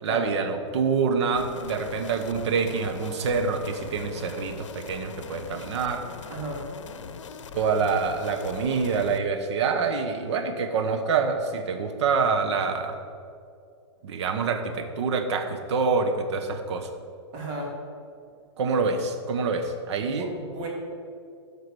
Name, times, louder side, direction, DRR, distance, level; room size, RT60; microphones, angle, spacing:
voice 1, 0.0-6.0 7.5-13.0 14.0-16.9 18.6-20.3, right 5 dB, 65° right, 6 dB, 1.3 m, -26 dB
sound 1, 1.4-9.2, left 6 dB, 80° left, 0.7 m, -41 dB
voice 2, 6.3-6.6 17.3-17.8 20.0-20.7, right 1 dB, 50° right, -2 dB, 3.0 m, -34 dB
13.0 x 5.2 x 6.3 m, 2.4 s
hypercardioid pair, 125°, 16 cm